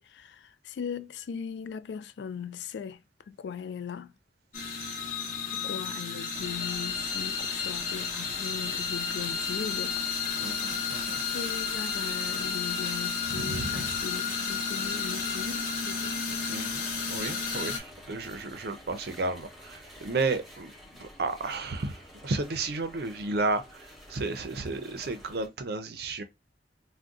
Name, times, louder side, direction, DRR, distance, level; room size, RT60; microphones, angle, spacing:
voice 1, 0.0-3.0 3.3-4.1 5.5-10.1 11.2-16.3, left 7 dB, 75° left, 0.3 m, -39 dB
sound 1, 4.5-17.8, left 5 dB, 50° left, 0.8 m, -32 dB
sound 2, 6.3-25.5, equal, ahead, 0.8 m, -49 dB
voice 2, 10.4-11.2 13.3-13.9 16.5-16.8 17.1-26.2, right 3 dB, 60° right, 0.5 m, -33 dB
2.5 x 2.2 x 3.5 m
head